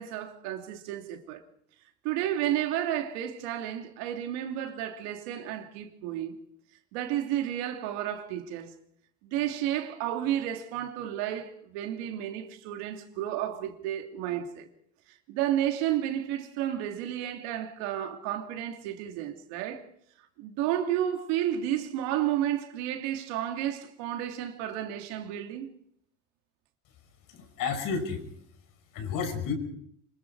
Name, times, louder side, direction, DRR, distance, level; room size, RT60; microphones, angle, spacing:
voice 1, 0.0-1.4 2.0-6.4 6.9-8.7 9.2-14.7 15.3-19.8 20.4-25.7, right 11 dB, 75° right, 2.8 m, -32 dB
voice 2, 27.3-28.2 28.9-29.5, left 5 dB, 55° left, 5.7 m, -31 dB
26.5 x 23.0 x 4.8 m
supercardioid pair, 125°, 38 cm